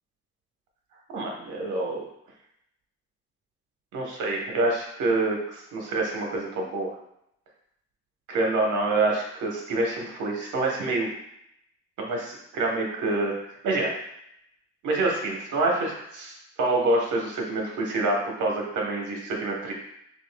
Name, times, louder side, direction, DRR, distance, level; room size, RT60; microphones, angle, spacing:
voice 1, 1.1-2.0 3.9-6.9 8.3-11.1 12.0-13.3 13.6-13.9 14.8-16.3 16.6-19.7, right 2 dB, 80° right, -1 dB, 1.2 m, -26 dB
6.1 x 2.7 x 2.3 m, 0.77 s
cardioid pair, 90°, 30 cm